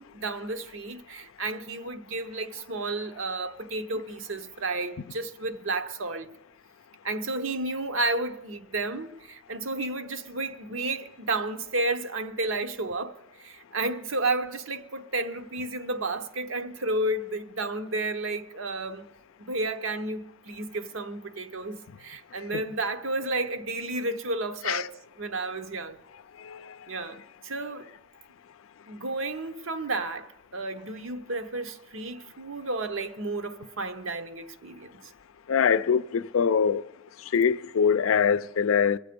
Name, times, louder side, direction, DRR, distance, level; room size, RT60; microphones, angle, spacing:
voice 1, 0.0-6.3 7.0-19.1 19.4-26.0 26.9-27.9 28.9-34.9, right 2 dB, 75° right, 0.9 m, -32 dB
voice 2, 35.5-36.8 37.3-39.0, left 6 dB, 85° left, 0.4 m, -23 dB
23.0 x 8.2 x 5.2 m
head